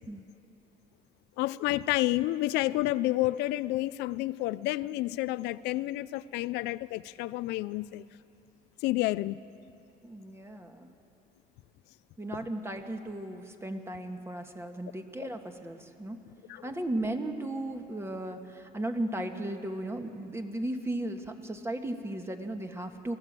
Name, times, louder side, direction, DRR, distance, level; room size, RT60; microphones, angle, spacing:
voice 1, 1.4-8.1 8.8-9.4 15.2-15.3 16.5-16.7, left 17 dB, 90° left, 16 dB, 0.4 m, -30 dB
voice 2, 10.0-10.9 12.2-16.2 16.6-23.2, right 1 dB, 15° right, 5 dB, 1.5 m, -36 dB
24.0 x 15.5 x 7.5 m, 2.7 s
cardioid pair, 110°, 17 cm